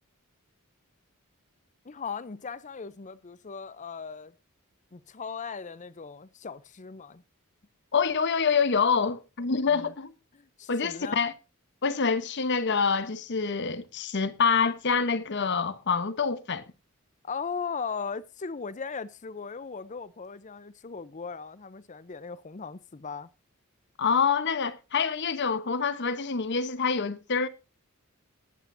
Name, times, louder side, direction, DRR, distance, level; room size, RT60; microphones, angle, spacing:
voice 1, 1.8-4.3 4.9-7.2 9.7-9.9 10.3-11.2 17.2-23.3, left 5 dB, 35° left, 0.6 m, -38 dB
voice 2, 7.9-10.1 10.7-11.3 11.8-16.6 24.0-27.5, left 5 dB, 55° left, 0.9 m, -26 dB
20.0 x 8.2 x 2.7 m
head